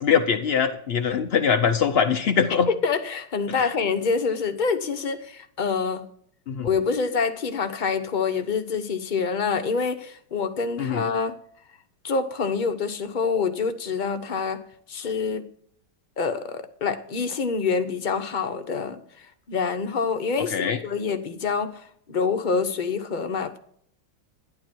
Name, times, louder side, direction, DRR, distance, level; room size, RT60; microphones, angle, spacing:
voice 1, 0.0-2.7 3.5-3.7 6.5-6.7 10.8-11.0 20.5-20.8, left 7 dB, 70° left, 0.5 m, -22 dB
voice 2, 2.7-6.0 6.6-11.4 12.0-14.6 14.9-15.4 16.2-19.0 19.5-23.6, left 5 dB, 35° left, 0.8 m, -26 dB
12.0 x 10.5 x 4.5 m
omnidirectional pair, 2.0 m